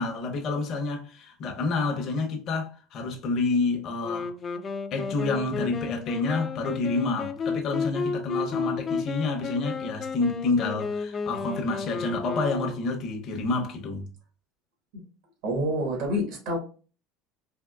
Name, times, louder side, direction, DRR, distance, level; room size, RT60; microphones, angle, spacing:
voice 1, 0.0-4.3 4.9-14.1, left 3 dB, 45° left, 0.7 m, -28 dB
Wind instrument woodwind instrument, 4.0-13.0, left 4 dB, 30° left, 0.4 m, -32 dB
voice 2, 15.4-16.6, equal, 70° right, 1.4 m, -27 dB
3.6 x 2.6 x 2.3 m
supercardioid pair, 130°, 0 cm